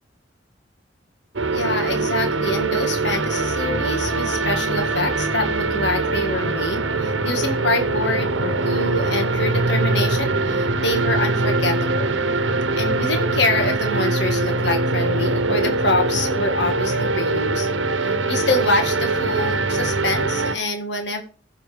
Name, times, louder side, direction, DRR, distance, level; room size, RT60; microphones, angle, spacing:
sound 1, 1.4-20.6, right 3 dB, 85° right, 1.0 m, -22 dB
voice 1, 1.5-12.2 12.8-17.7 18.0-21.2, left 2 dB, 70° left, 5 dB, 1.7 m, -25 dB
15.5 x 5.6 x 3.4 m, 0.37 s
head